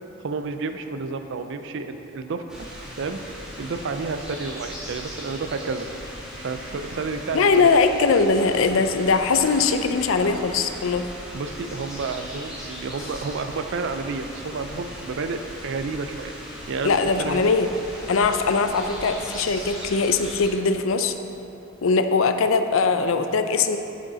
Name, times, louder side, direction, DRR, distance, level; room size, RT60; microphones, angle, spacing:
voice 1, 0.2-2.4 3.0-3.2 3.6-5.9 6.4-7.7 11.3-16.3 16.7-17.4, right 4 dB, 65° right, 8 dB, 0.4 m, -30 dB
sound 1, 2.5-20.5, equal, 5° right, 1.8 m, -38 dB
voice 2, 7.3-11.0 16.8-17.7 18.1-21.1 21.8-23.8, left 4 dB, 75° left, 8 dB, 0.5 m, -21 dB
8.7 x 6.4 x 4.0 m, 3.0 s
head